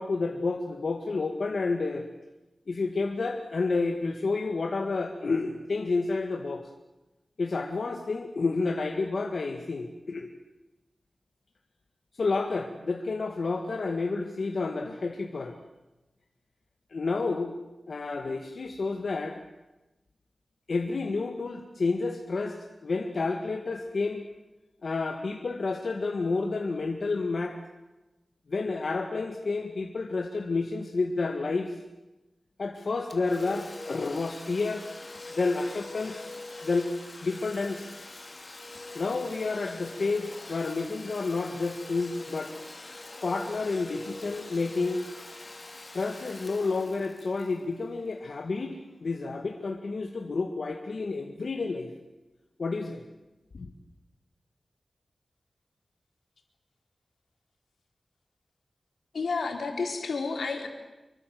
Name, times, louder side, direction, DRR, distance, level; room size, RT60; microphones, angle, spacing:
voice 1, 0.0-2.1 2.7-6.6 7.4-10.3 12.1-15.5 16.9-17.5 17.9-19.4 20.7-24.2 24.8-27.6 28.5-31.8 32.6-34.8 35.3-36.3 36.6-37.0 37.2-37.9 38.9-42.6 43.2-45.0 45.9-51.9 52.6-53.0 53.5-53.7, left 3 dB, 65° left, 3 dB, 2.0 m, -30 dB
Domestic sounds home sounds, 33.1-48.6, left 2 dB, 30° left, 2.8 m, -44 dB
voice 2, 59.1-60.7, left 4 dB, 90° left, 3 dB, 4.1 m, -30 dB
26.0 x 23.5 x 7.9 m, 1.0 s
wide cardioid pair, 110°, 0 cm